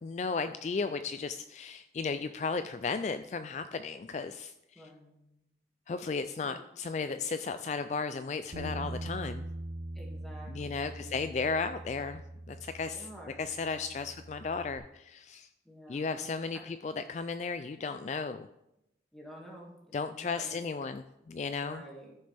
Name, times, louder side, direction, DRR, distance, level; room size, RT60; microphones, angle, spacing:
voice 1, 0.0-4.9 5.9-9.5 10.5-12.2 12.5-13.1 13.4-15.5 15.9-18.5 19.9-21.8, left 4 dB, 40° left, 10 dB, 0.3 m, -35 dB
voice 2, 4.8-5.4 6.4-6.6 10.0-11.2 12.9-13.5 15.7-16.7 19.1-20.6 21.6-22.2, equal, ahead, -3 dB, 2.1 m, -50 dB
Bass guitar, 8.5-14.8, right 1 dB, 75° right, 1.3 m, -42 dB
14.0 x 6.5 x 3.4 m, 0.86 s
head